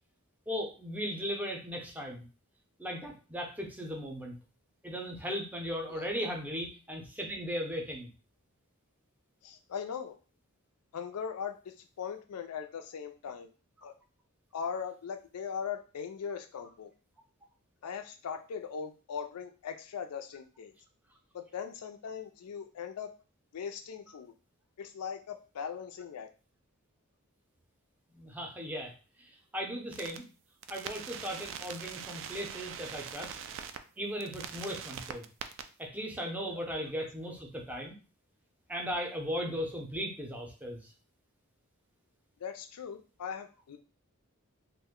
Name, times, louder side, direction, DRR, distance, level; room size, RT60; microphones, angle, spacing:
voice 1, 0.5-2.3 2.8-4.4 4.8-8.1 28.1-28.9 29.2-30.3 30.7-33.4 34.0-35.3 35.8-38.0 38.7-40.9, equal, 5° right, 1 dB, 0.6 m, -37 dB
voice 2, 9.4-10.2 10.9-13.5 13.8-13.9 14.5-16.9 17.8-20.7 21.3-23.1 23.5-24.3 24.8-26.3 36.5-36.6 42.4-43.8, left 7 dB, 85° left, 6 dB, 0.4 m, -40 dB
sound 1, 29.9-30.2 30.6-33.8 34.2-35.6, right 8 dB, 60° right, 0.3 m, -42 dB
2.5 x 2.1 x 3.6 m, 0.35 s
head